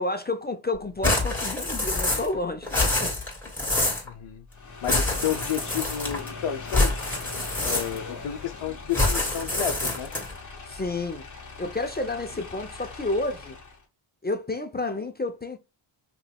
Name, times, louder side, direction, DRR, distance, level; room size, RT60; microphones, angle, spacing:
voice 1, 0.0-3.1 10.7-11.2 11.6-13.6 14.2-15.6, left 2 dB, 20° left, 0.5 m, -30 dB
sound 1, 1.0-2.4 2.6-4.1 4.8-6.3 6.7-8.2 8.9-10.4, left 2 dB, 5° left, 3.0 m, -26 dB
voice 2, 4.0-4.4 4.8-7.0 7.4-10.1, left 9 dB, 65° left, 0.7 m, -31 dB
sound 2, 4.5-13.8, left 4 dB, 35° left, 1.2 m, -41 dB
7.0 x 3.1 x 2.3 m
wide cardioid pair, 135°, 50 cm